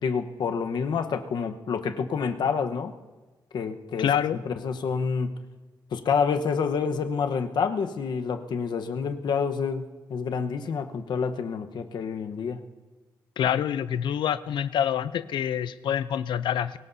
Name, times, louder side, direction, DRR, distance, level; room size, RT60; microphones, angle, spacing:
voice 1, 0.0-2.9 3.5-4.1 4.5-5.4 5.9-12.6, left 6 dB, 70° left, 7 dB, 1.0 m, -28 dB
voice 2, 4.0-4.4 13.4-16.8, left 9 dB, 90° left, 14 dB, 0.5 m, -26 dB
22.5 x 19.0 x 2.7 m, 1.3 s
wide cardioid pair, 135°, 8 cm